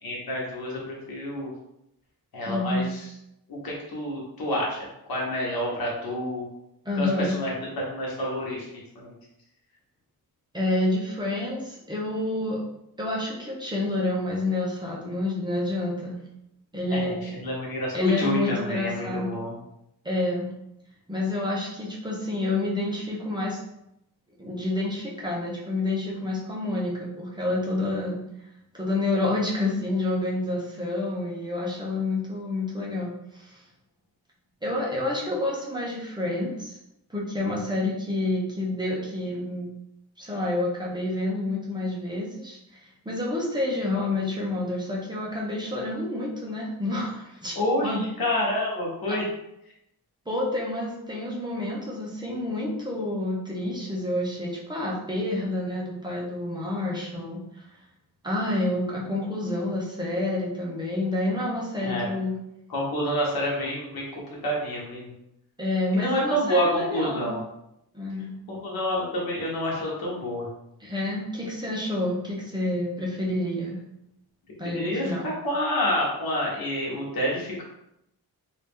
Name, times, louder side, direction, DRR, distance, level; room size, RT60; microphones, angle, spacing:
voice 1, 0.0-1.5 2.3-3.1 3.5-6.5 6.9-8.7 8.9-9.1 16.9-19.5 47.5-49.2 61.8-62.1 62.7-65.1 65.9-67.4 68.5-70.5 74.7-77.6, equal, 70° left, -3 dB, 1.3 m, -28 dB
voice 2, 2.5-2.9 6.8-7.4 10.5-12.6 13.0-16.2 16.7-17.2 17.9-19.3 20.0-20.5 21.1-23.6 24.4-28.2 28.7-33.6 34.6-36.8 37.1-39.6 40.2-47.6 47.8-48.0 49.1-49.2 50.3-57.7 58.2-62.4 65.6-67.4 67.9-68.3 70.8-73.8 74.6-75.3, left 2 dB, 10° right, -4 dB, 0.8 m, -28 dB
2.9 x 2.8 x 3.6 m, 0.83 s
wide cardioid pair, 120°, 38 cm